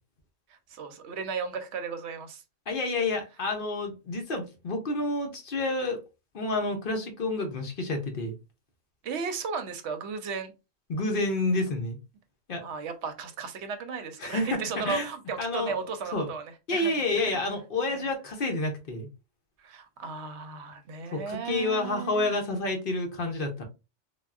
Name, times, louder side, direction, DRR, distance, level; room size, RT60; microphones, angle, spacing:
voice 1, 0.7-2.4 9.0-10.5 12.6-16.4 16.7-16.9 17.9-18.1 19.6-22.3, right 5 dB, 70° right, 0.8 m, -35 dB
voice 2, 2.7-6.0 6.3-8.4 10.9-12.0 12.5-12.6 14.2-15.1 15.4-15.9 16.1-16.3 16.7-19.1 21.1-23.6, left 2 dB, 50° left, 0.8 m, -29 dB
3.5 x 2.3 x 2.3 m
omnidirectional pair, 1.3 m